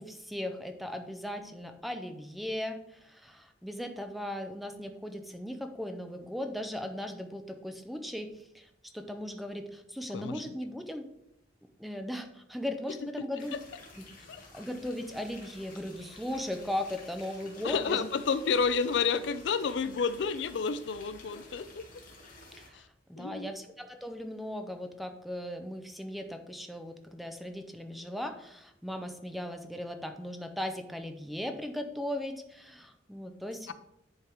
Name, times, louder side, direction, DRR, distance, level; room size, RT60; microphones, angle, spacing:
voice 1, 0.0-11.1 11.8-13.5 14.0-14.1 14.5-18.0 22.6-33.7, left 1 dB, ahead, 7 dB, 0.6 m, -38 dB
sound 1, 13.4-22.7, left 2 dB, 45° left, 1.9 m, -52 dB
voice 2, 17.6-21.8 22.7-22.9 23.2-23.5 33.7-33.8, left 5 dB, 65° left, 13 dB, 0.4 m, -30 dB
10.0 x 3.7 x 4.5 m, 0.80 s
head